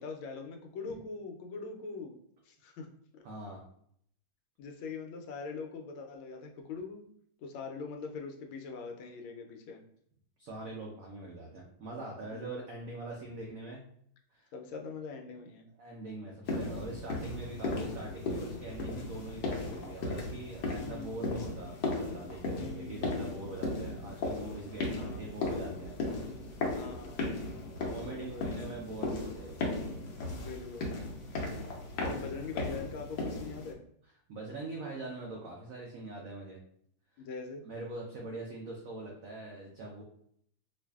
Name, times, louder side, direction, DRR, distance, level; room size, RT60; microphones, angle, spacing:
voice 1, 0.0-2.2 2.5-3.2 4.6-7.0 7.4-9.8 12.3-12.6 14.5-15.7 20.8-21.1 22.6-23.5 24.9-25.2 26.7-27.3 28.1-28.5 30.3-31.1 32.0-33.8 37.2-37.6, left 4 dB, 85° left, 3 dB, 1.4 m, -43 dB
voice 2, 3.2-3.6 10.4-13.8 14.3-14.5 15.8-25.9 26.4-26.6 27.5-27.6 27.9-29.6 34.3-36.6 37.2-37.3 37.7-40.0, right 2 dB, 90° right, -1 dB, 0.7 m, -43 dB
sound 1, 16.5-33.7, left 2 dB, 65° left, 1.3 m, -36 dB
4.7 x 2.5 x 2.3 m, 0.66 s
omnidirectional pair, 2.2 m